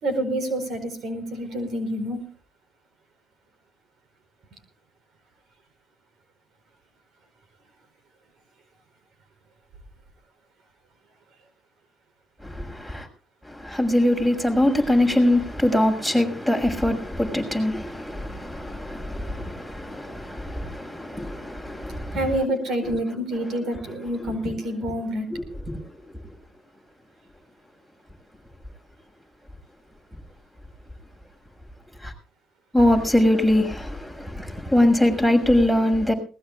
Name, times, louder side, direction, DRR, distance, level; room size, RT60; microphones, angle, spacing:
voice 1, 0.0-2.3 22.1-25.3, right 1 dB, 70° right, 4.6 m, -27 dB
voice 2, 12.4-13.1 13.4-22.3 22.8-22.9 25.3-25.8 32.0-32.1 32.7-36.1, left 1 dB, 10° right, 6.5 m, -22 dB
21.5 x 20.0 x 2.5 m
cardioid pair, 90°, 0 cm